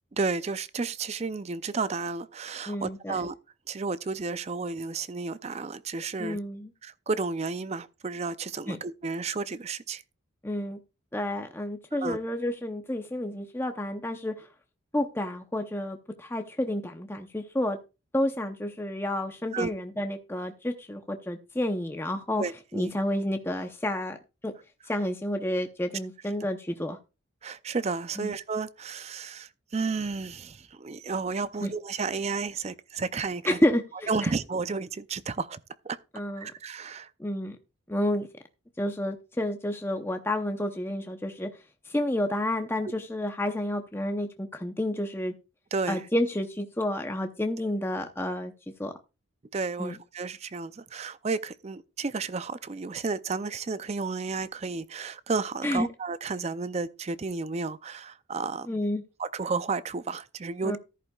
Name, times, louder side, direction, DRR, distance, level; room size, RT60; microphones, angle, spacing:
voice 1, 0.2-3.3 3.7-6.4 6.8-10.0 12.0-12.2 19.5-19.7 22.4-22.9 27.4-33.6 34.1-35.6 35.8-36.0 36.4-37.1 45.7-46.1 49.5-58.8 59.2-60.8, right 4 dB, 30° right, 0.4 m, -32 dB
voice 2, 2.7-3.2 6.2-6.7 8.7-8.8 10.4-10.8 11.1-14.5 14.9-17.8 18.1-22.4 22.7-24.2 24.4-24.5 24.9-27.0 28.2-28.3 31.6-31.7 33.5-34.3 36.1-36.5 37.2-37.6 37.9-38.3 38.8-41.5 41.9-45.3 45.9-48.5 48.8-48.9 49.8-50.0 55.6-55.9 58.7-59.0 60.6-60.8, left 1 dB, 10° left, 0.7 m, -30 dB
14.0 x 11.0 x 2.3 m
head